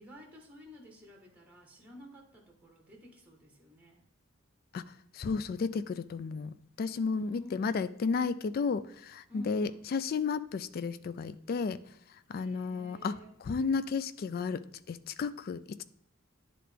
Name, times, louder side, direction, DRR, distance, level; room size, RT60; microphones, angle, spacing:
voice 1, 0.0-4.0 7.1-7.8 9.3-9.9 12.3-13.3, left 1 dB, 5° right, 1.3 m, -52 dB
voice 2, 5.1-11.8 12.3-15.8, left 5 dB, 45° left, 0.3 m, -33 dB
10.0 x 3.8 x 3.4 m
head